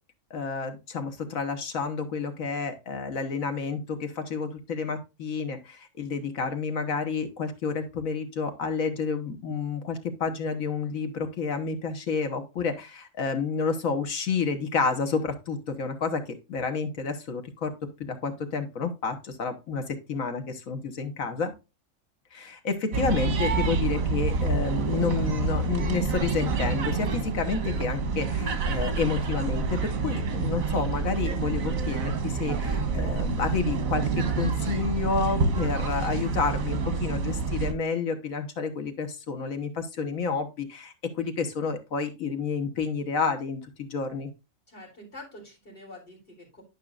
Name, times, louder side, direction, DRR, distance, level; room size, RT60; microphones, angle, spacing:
voice 1, 0.3-17.7 18.0-21.5 22.3-44.3, left 5 dB, 80° left, 7 dB, 1.7 m, -30 dB
sound 1, 22.9-37.7, right 4 dB, 80° right, 1.5 m, -28 dB
voice 2, 44.7-46.6, left 1 dB, 40° left, -3 dB, 4.2 m, -46 dB
11.0 x 5.5 x 2.4 m, 0.27 s
omnidirectional pair, 1.4 m